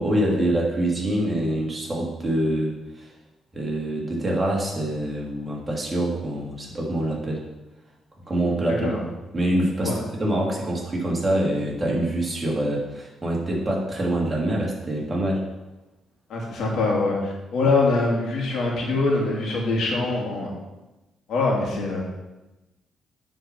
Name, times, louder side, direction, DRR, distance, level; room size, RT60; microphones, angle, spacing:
voice 1, 0.0-3.1 3.5-7.4 8.3-8.9 9.3-9.9 10.2-15.4, right 1 dB, 25° right, -3 dB, 2.4 m, -25 dB
voice 2, 16.3-20.5 21.3-22.0, left 3 dB, 70° left, -2 dB, 2.6 m, -23 dB
9.4 x 4.6 x 6.0 m, 1.1 s
cardioid pair, 90°, 0 cm